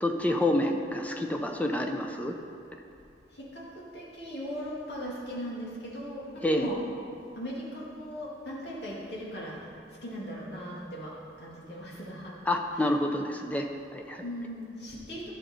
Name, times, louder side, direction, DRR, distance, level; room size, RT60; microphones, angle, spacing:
voice 1, 0.0-2.3 6.4-6.7 12.5-14.2, left 1 dB, 10° left, 3 dB, 0.6 m, -28 dB
voice 2, 3.3-6.8 7.4-9.6 10.0-11.1 11.4-12.3 12.8-12.9 14.2-15.3, equal, 70° left, -5 dB, 2.3 m, -38 dB
11.5 x 6.7 x 4.4 m, 2.6 s
head